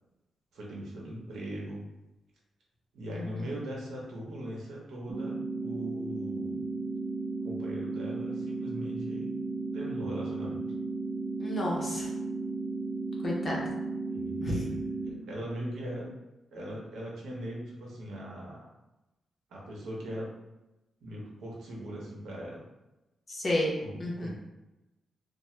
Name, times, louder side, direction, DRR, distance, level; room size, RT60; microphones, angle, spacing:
voice 1, 0.5-1.8 2.9-6.8 7.4-9.4 9.7-10.6 14.1-14.7 15.0-16.1 16.5-18.7 19.5-20.3 21.0-22.6 23.8-24.3, right 1 dB, 75° right, -3 dB, 0.8 m, -40 dB
voice 2, 3.1-3.5 11.4-12.1 13.2-13.7 14.4-14.7 23.3-23.7 24.0-24.3, left 1 dB, 30° left, -3 dB, 0.6 m, -31 dB
sound 1, 5.1-15.1, right 3 dB, 55° right, 0.3 m, -34 dB
2.8 x 2.0 x 3.1 m, 0.99 s
wide cardioid pair, 175°, 0 cm